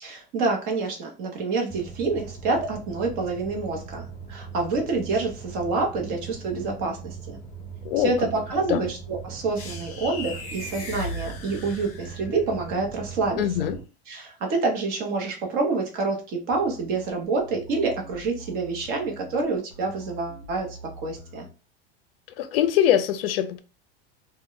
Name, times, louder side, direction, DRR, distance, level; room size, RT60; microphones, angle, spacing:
voice 1, 0.0-7.2 8.0-13.7 14.1-21.5, right 3 dB, 35° right, 0.7 m, -27 dB
sound 1, 1.7-13.8, right 6 dB, 10° left, 0.4 m, -40 dB
sound 2, 9.5-12.4, left 2 dB, 45° left, 1.0 m, -37 dB
voice 2, 13.4-13.8 22.4-23.6, left 11 dB, 75° left, 0.5 m, -22 dB
sound 3, 16.5-21.5, right 1 dB, 70° right, 0.8 m, -45 dB
2.2 x 2.1 x 3.7 m
supercardioid pair, 165°, 29 cm